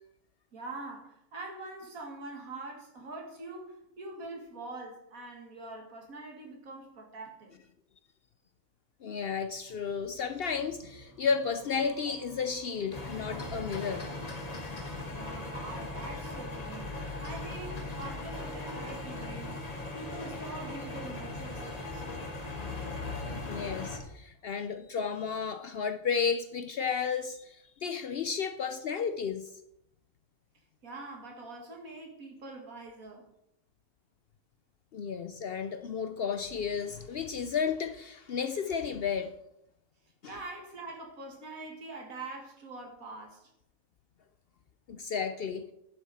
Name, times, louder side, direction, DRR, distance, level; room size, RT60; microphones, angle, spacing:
voice 1, 0.5-7.5 15.1-19.6 19.9-22.0 30.8-33.3 40.3-43.5, right 2 dB, 85° right, 2.5 m, -44 dB
voice 2, 9.0-14.1 20.2-20.3 23.4-29.5 34.9-39.3 40.2-40.3 44.9-45.7, left 6 dB, 60° left, 0.6 m, -33 dB
sound 1, 10.5-24.2, right 1 dB, 15° right, 1.4 m, -53 dB
sound 2, 12.9-24.0, left 2 dB, 30° left, 1.4 m, -39 dB
10.5 x 7.3 x 4.2 m
omnidirectional pair, 1.4 m